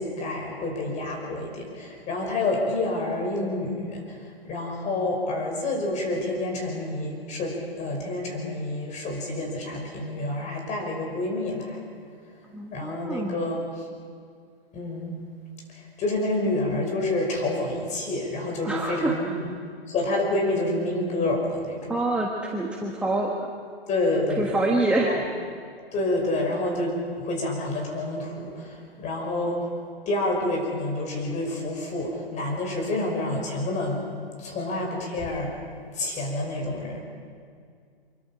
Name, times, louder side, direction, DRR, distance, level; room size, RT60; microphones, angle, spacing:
voice 1, 0.0-4.2 4.5-11.8 12.7-13.6 14.7-15.2 15.7-19.4 19.9-22.0 23.9-24.7 25.0-25.2 25.9-29.7 30.1-34.0 34.4-35.5 35.9-37.0, left 2 dB, 20° left, 1 dB, 5.6 m, -28 dB
voice 2, 12.5-13.4 18.6-19.2 21.9-23.5 24.4-25.1, right 2 dB, 5° right, -1 dB, 1.3 m, -26 dB
24.5 x 23.0 x 5.7 m, 2.2 s
hypercardioid pair, 125°, 31 cm